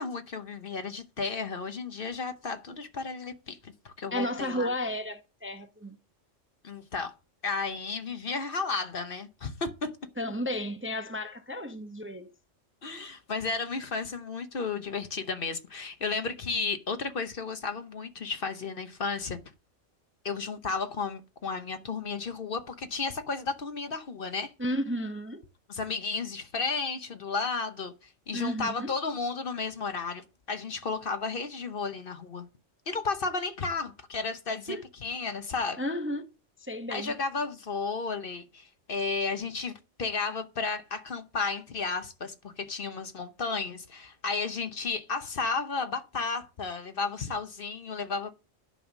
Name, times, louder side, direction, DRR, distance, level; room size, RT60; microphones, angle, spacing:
voice 1, 0.0-4.7 6.6-7.1 7.4-10.0 12.8-19.4 20.2-24.5 25.7-32.5 32.9-35.8 36.9-39.7 40.0-48.3, left 4 dB, 50° left, 1.1 m, -33 dB
voice 2, 4.1-6.0 10.2-12.3 24.6-25.4 28.3-28.9 34.7-34.8 35.8-36.2 36.6-37.1, equal, 10° right, 0.7 m, -33 dB
10.5 x 5.6 x 6.2 m
omnidirectional pair, 1.3 m